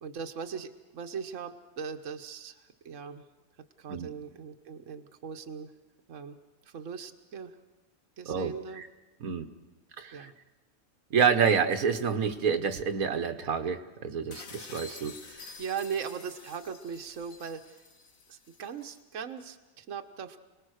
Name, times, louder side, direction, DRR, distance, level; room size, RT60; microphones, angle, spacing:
voice 1, 0.0-3.3 3.8-5.7 6.1-6.4 6.6-7.6 8.2-8.8 10.1-10.3 15.3-17.8 18.3-20.4, right 6 dB, 60° right, 5 dB, 1.5 m, -39 dB
voice 2, 8.3-8.9 9.2-9.4 10.0-10.3 11.1-15.2, right 6 dB, 85° right, 6 dB, 1.7 m, -28 dB
sound 1, 14.3-19.0, left 4 dB, 70° left, 2.0 m, -49 dB
29.5 x 20.0 x 6.5 m, 1.2 s
omnidirectional pair, 1.5 m